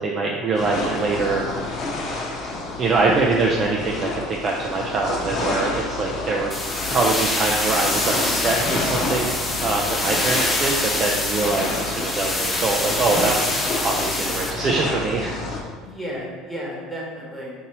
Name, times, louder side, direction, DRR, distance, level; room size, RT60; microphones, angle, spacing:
voice 1, 0.0-1.5 2.8-6.5 6.9-9.3 9.6-15.3, right 3 dB, 40° right, -1 dB, 0.4 m, -23 dB
sound 1, 0.5-15.6, left 2 dB, 50° left, 0.9 m, -29 dB
sound 2, 6.5-14.5, left 2 dB, 15° left, 0.6 m, -25 dB
voice 2, 9.9-10.2 15.8-17.5, equal, 5° right, -5 dB, 1.2 m, -33 dB
5.2 x 2.7 x 2.9 m, 1.5 s
supercardioid pair, 105°, 0 cm